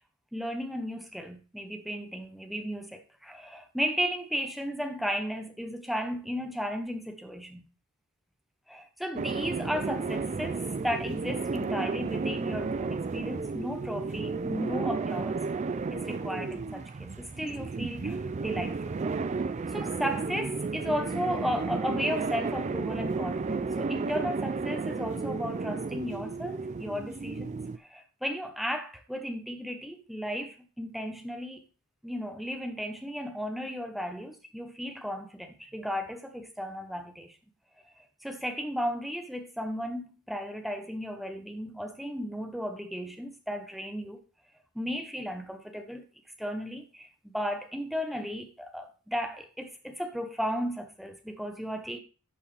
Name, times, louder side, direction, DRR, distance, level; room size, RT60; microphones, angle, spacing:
voice 1, 0.3-7.6 8.7-15.4 15.9-19.0 19.7-31.6 32.0-37.4 38.0-44.2 44.7-46.0 46.4-52.0, equal, ahead, 0.9 m, -35 dB
sound 1, 9.2-27.8, right 4 dB, 30° right, 0.3 m, -33 dB
11.0 x 4.6 x 3.3 m
head